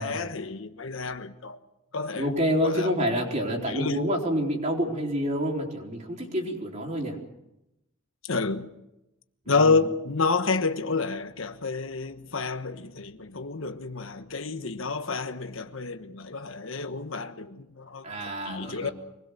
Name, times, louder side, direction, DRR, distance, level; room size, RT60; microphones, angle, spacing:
voice 1, 0.0-1.6 1.9-2.9 3.6-4.1 8.3-8.7 9.5-18.9, left 4 dB, 80° left, 1.3 m, -29 dB
voice 2, 2.1-7.2 18.0-18.9, equal, 35° right, 4.3 m, -28 dB
25.0 x 20.5 x 6.7 m
head